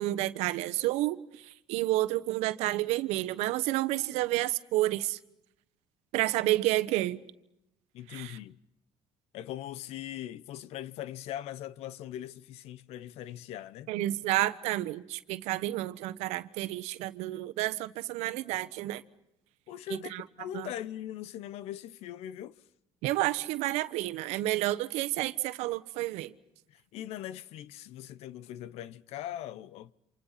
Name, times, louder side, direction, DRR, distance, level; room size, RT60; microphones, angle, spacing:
voice 1, 0.0-5.2 6.1-7.2 8.1-8.4 13.9-19.0 19.9-20.2 20.5-20.7 23.0-26.3, right 17 dB, 80° right, 1.3 m, -30 dB
voice 2, 7.9-8.6 9.3-13.9 19.7-22.6 26.7-29.9, left 12 dB, 70° left, 1.0 m, -41 dB
28.5 x 26.5 x 5.8 m
cardioid pair, 110°, 11 cm